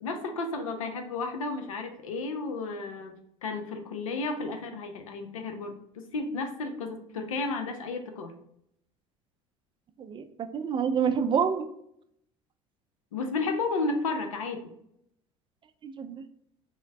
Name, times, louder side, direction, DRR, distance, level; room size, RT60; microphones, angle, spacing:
voice 1, 0.0-8.4 13.1-14.7, left 3 dB, 80° left, 6 dB, 0.5 m, -33 dB
voice 2, 10.0-11.7 15.8-16.1, right 7 dB, 30° right, 8 dB, 0.4 m, -27 dB
3.8 x 2.1 x 3.3 m, 0.73 s
hypercardioid pair, 65°, 17 cm